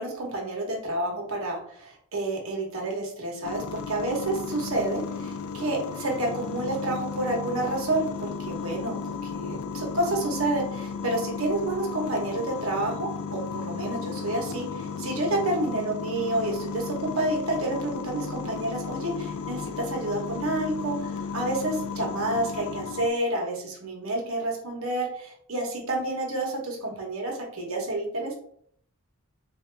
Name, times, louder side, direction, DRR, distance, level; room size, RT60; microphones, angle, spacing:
voice 1, 0.0-28.3, right 2 dB, 70° right, 0 dB, 1.1 m, -29 dB
sound 1, 3.4-23.1, left 5 dB, 75° left, 0.3 m, -34 dB
3.8 x 2.8 x 3.3 m, 0.63 s
head